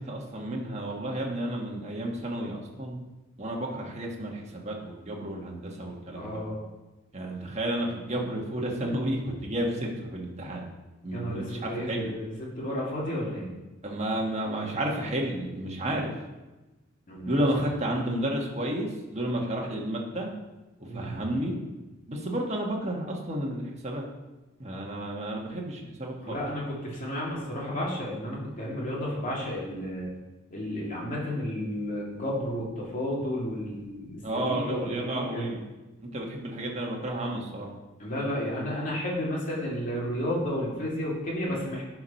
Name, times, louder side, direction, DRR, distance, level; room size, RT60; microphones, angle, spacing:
voice 1, 0.0-3.0 3.4-6.4 7.1-10.6 11.0-12.1 13.8-16.1 17.3-20.3 20.9-21.6 22.1-24.0 24.6-26.4 34.2-35.6 36.0-37.7, right 1 dB, 30° right, -1 dB, 1.5 m, -31 dB
voice 2, 6.1-6.5 11.1-13.5 17.1-17.3 20.9-21.1 26.2-30.1 30.5-34.2 34.5-35.5 38.0-41.8, equal, 40° left, -4 dB, 2.8 m, -32 dB
10.5 x 4.8 x 5.7 m, 1.1 s
head